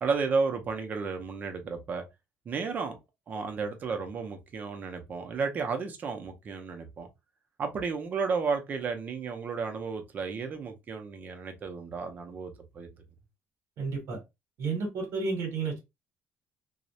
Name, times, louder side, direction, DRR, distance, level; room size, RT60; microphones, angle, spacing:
voice 1, 0.0-2.0 2.5-3.0 3.3-7.1 7.6-12.9, right 5 dB, 30° right, 0.5 m, -32 dB
voice 2, 13.8-14.2 14.6-15.8, right 4 dB, 60° right, 0.9 m, -31 dB
2.3 x 2.0 x 2.7 m
cardioid pair, 165°, 5 cm